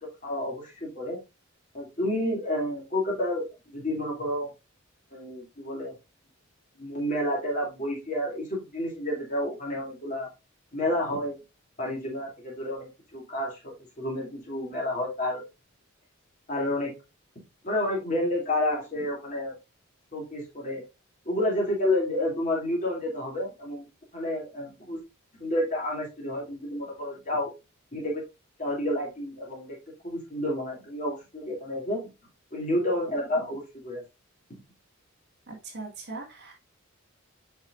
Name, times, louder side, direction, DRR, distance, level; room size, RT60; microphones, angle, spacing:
voice 1, 0.2-1.2 1.7-4.5 5.1-5.9 6.8-10.3 10.7-11.4 11.8-15.4 16.5-16.9 17.6-19.5 20.1-20.8 21.2-23.9 24.1-25.0 25.4-27.5 27.9-28.2 28.6-29.8 30.0-32.0 32.5-34.0, left 1 dB, 35° left, -2 dB, 2.6 m, -30 dB
voice 2, 35.5-36.5, right 3 dB, 50° right, -1 dB, 2.0 m, -40 dB
7.8 x 5.5 x 2.4 m, 0.25 s
head